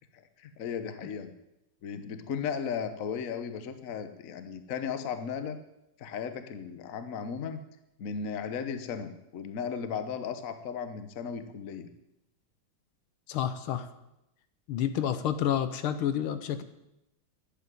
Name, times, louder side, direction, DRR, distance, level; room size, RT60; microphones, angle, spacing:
voice 1, 0.1-1.3 1.8-5.6 6.0-7.6 8.0-11.9, left 7 dB, 50° left, 10 dB, 1.2 m, -36 dB
voice 2, 13.3-13.9 14.7-16.6, left 9 dB, 80° left, 11 dB, 1.7 m, -29 dB
11.0 x 8.7 x 9.2 m, 0.87 s
omnidirectional pair, 2.3 m